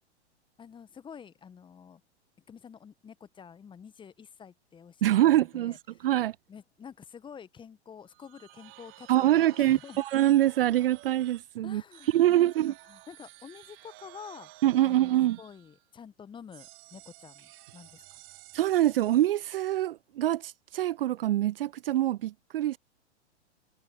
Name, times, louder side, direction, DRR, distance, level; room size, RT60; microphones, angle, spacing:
voice 1, 0.6-2.0 2.5-5.0 5.3-5.8 6.5-10.0 11.6-14.5 14.8-15.1 15.4-18.2, left 7 dB, 15° left, 1.3 m, -48 dB
voice 2, 5.0-6.4 9.1-11.8 12.1-12.7 14.6-15.4 18.5-22.8, right 13 dB, 55° right, 0.6 m, -25 dB
sound 1, 8.1-11.5 11.9-15.9 16.5-19.3, right 24 dB, 35° right, 3.8 m, -52 dB
figure-of-eight pair, 105°, 34 cm